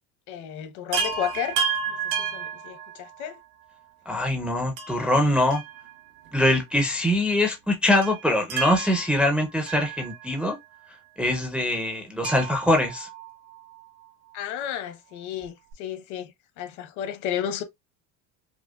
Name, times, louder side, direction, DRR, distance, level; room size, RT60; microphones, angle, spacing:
voice 1, 0.3-1.6 1.9-3.4 14.3-17.6, left 10 dB, 60° left, 0.9 m, -33 dB
Chime, 0.9-3.4 4.8-6.3 6.6-6.7 7.9-10.6 12.2-13.8 15.4-15.5 15.7-15.8, right 6 dB, 85° right, 1.4 m, -32 dB
voice 2, 4.1-5.6 6.3-10.6 11.2-13.1, left 1 dB, 5° right, 0.4 m, -23 dB
4.9 x 2.0 x 2.3 m
cardioid pair, 175°, 34 cm